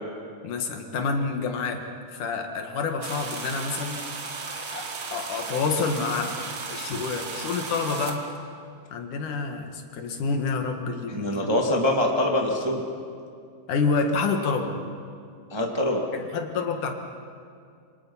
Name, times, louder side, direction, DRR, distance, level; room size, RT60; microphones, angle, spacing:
voice 1, 0.4-1.8 2.1-4.1 4.7-6.4 6.7-8.3 8.9-11.3 13.7-14.7 16.1-16.9, left 4 dB, 70° left, 4 dB, 3.2 m, -28 dB
sound 1, 3.0-8.2, right 4 dB, 45° right, 2.1 m, -35 dB
voice 2, 11.1-12.8 15.5-16.0, left 1 dB, 10° right, 0 dB, 1.4 m, -24 dB
28.0 x 25.5 x 5.6 m, 2.3 s
omnidirectional pair, 3.7 m